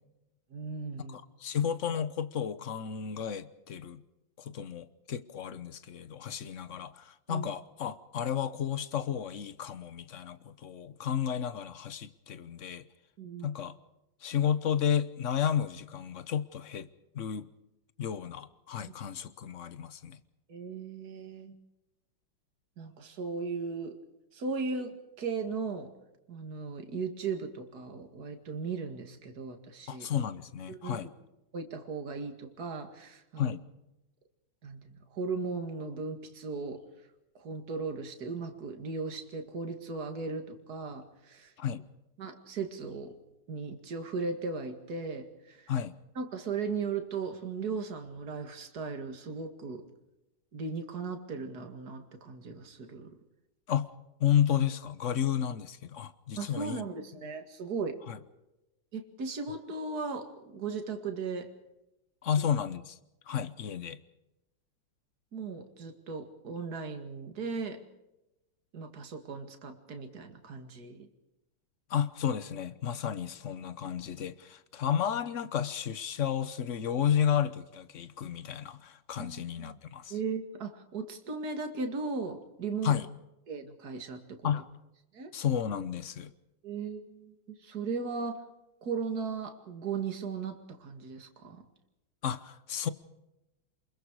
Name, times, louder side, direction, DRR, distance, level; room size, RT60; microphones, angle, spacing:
voice 1, 0.5-1.2 7.3-7.5 13.2-13.5 20.5-21.6 22.8-23.9 24.3-25.9 26.3-30.1 30.7-31.0 31.5-33.6 34.6-36.8 37.3-41.5 42.2-43.1 43.5-45.7 46.2-49.8 50.5-53.1 56.4-58.0 58.9-61.5 65.3-67.8 68.7-71.1 79.2-79.7 80.1-82.9 83.5-84.2 85.1-85.3 86.6-88.4 88.8-91.6, right 4 dB, 50° right, 2.5 m, -37 dB
voice 2, 1.1-4.0 4.4-12.9 13.4-13.8 14.2-16.9 17.1-17.5 18.0-20.2 29.9-31.1 33.4-33.6 41.6-41.8 45.7-45.9 53.7-53.9 54.2-56.8 58.1-58.2 62.2-63.0 63.3-64.0 71.9-80.1 82.8-83.1 84.4-84.6 85.3-86.3 92.2-92.9, left 9 dB, 50° left, 1.0 m, -32 dB
28.5 x 21.5 x 4.8 m
omnidirectional pair, 2.2 m